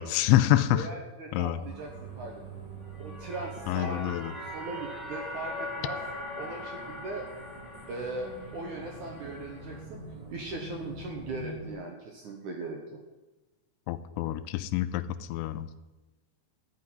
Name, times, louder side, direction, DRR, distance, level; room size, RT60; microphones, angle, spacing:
voice 1, 0.0-0.9 1.3-1.6 3.7-4.3 13.9-15.0 15.3-15.7, left 14 dB, 85° left, 13 dB, 2.9 m, -26 dB
voice 2, 0.7-2.4 3.0-6.0 6.4-7.3 7.9-10.0 10.3-13.0, right 3 dB, 65° right, 1 dB, 2.1 m, -39 dB
sound 1, 1.6-11.7, right 2 dB, 15° right, 1.1 m, -45 dB
sound 2, 2.9-9.8, left 1 dB, ahead, 0.6 m, -41 dB
13.5 x 6.2 x 10.0 m, 1.1 s
omnidirectional pair, 5.2 m